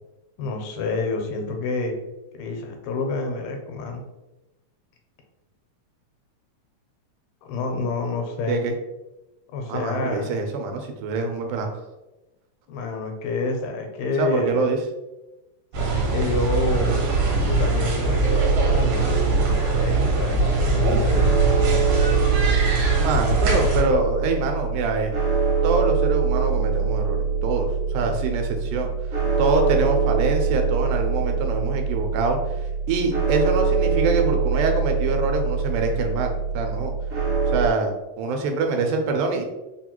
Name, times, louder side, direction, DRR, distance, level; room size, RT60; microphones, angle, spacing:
voice 1, 0.4-2.0 2.3-4.0 7.4-8.6 9.5-10.4 12.7-14.7 15.8-17.0 17.4-21.5 28.0-28.2, left 3 dB, 90° left, 3 dB, 2.2 m, -28 dB
voice 2, 9.7-11.7 14.2-14.8 23.0-25.1 25.6-28.9 29.4-32.4 32.9-36.9 37.5-37.9 38.2-39.5, right 3 dB, 90° right, 4 dB, 2.2 m, -25 dB
sound 1, 15.7-23.8, right 3 dB, 75° right, 2.2 m, -22 dB
sound 2, 18.3-37.7, right 5 dB, 60° right, 2.3 m, -24 dB
5.0 x 2.3 x 2.9 m, 1.0 s
omnidirectional pair, 3.5 m